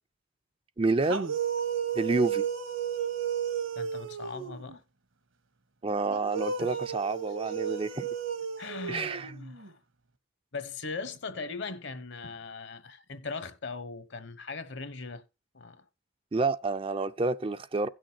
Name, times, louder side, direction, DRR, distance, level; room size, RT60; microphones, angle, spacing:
voice 1, 0.8-1.4 2.0-2.5 5.8-8.1 8.9-9.3 16.3-17.9, right 3 dB, 25° right, 0.5 m, -29 dB
sound 1, 1.0-4.8 6.1-9.7, right 8 dB, 75° right, 1.4 m, -33 dB
voice 2, 3.7-4.8 6.6-6.9 8.6-9.8 10.5-15.2 15.5-15.8, left 4 dB, 60° left, 1.1 m, -39 dB
16.5 x 6.4 x 2.9 m
head